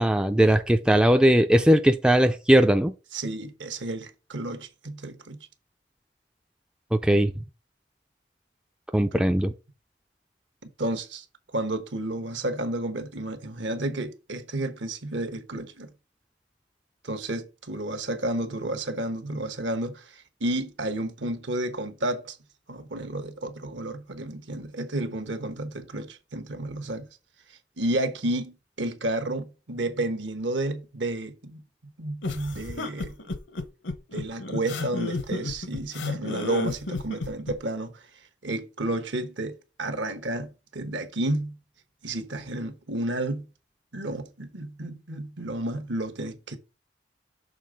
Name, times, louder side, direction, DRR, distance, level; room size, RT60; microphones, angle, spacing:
voice 1, 0.0-2.9 6.9-7.3 8.9-9.5, right 1 dB, 5° right, 0.3 m, -19 dB
voice 2, 3.1-5.5 9.1-9.2 10.8-11.2 11.5-15.9 17.0-22.4 22.7-27.1 27.8-31.6 32.0-33.2 34.1-38.0 38.4-41.6 42.0-43.5 43.9-46.6, right 1 dB, 75° right, 1.1 m, -31 dB
sound 1, 32.2-37.6, left 3 dB, 75° left, 0.9 m, -32 dB
6.5 x 3.4 x 5.0 m
head